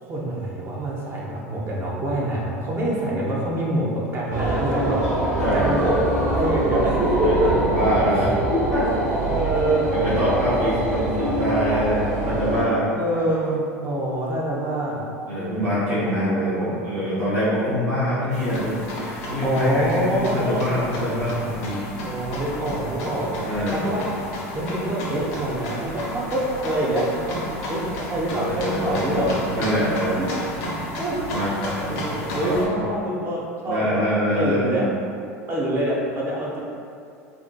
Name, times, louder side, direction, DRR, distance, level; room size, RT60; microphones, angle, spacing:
voice 1, 0.0-7.5 9.2-10.2 12.9-15.0 16.0-16.8 19.4-20.7 22.0-23.3 23.7-24.0 24.5-29.6 30.1-30.4 30.9-31.2 31.9-34.0 34.3-34.9 35.5-36.6, right 1 dB, 30° right, -5 dB, 0.6 m, -25 dB
sound 1, 4.3-12.6, right 1 dB, 50° right, 1.3 m, -24 dB
voice 2, 5.4-5.7 7.2-8.9 9.9-12.9 15.3-21.8 23.4-23.8 28.4-30.3 31.3-31.5 32.1-32.9 33.6-34.9, equal, 85° right, -11 dB, 0.7 m, -25 dB
sound 2, 18.3-32.6, left 1 dB, 55° left, 0.6 m, -32 dB
2.5 x 2.4 x 2.2 m, 2.4 s
figure-of-eight pair, 75°, 8 cm